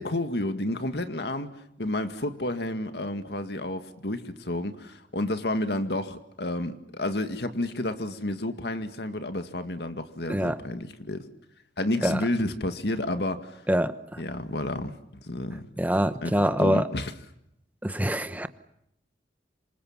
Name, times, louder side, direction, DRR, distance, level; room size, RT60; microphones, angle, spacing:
voice 1, 0.0-11.2 11.8-13.6 14.2-14.9 15.2-15.6 16.2-17.1, left 1 dB, 65° left, 2.1 m, -30 dB
voice 2, 15.8-16.9 17.8-18.5, equal, 10° right, 1.1 m, -24 dB
27.0 x 26.0 x 7.4 m
head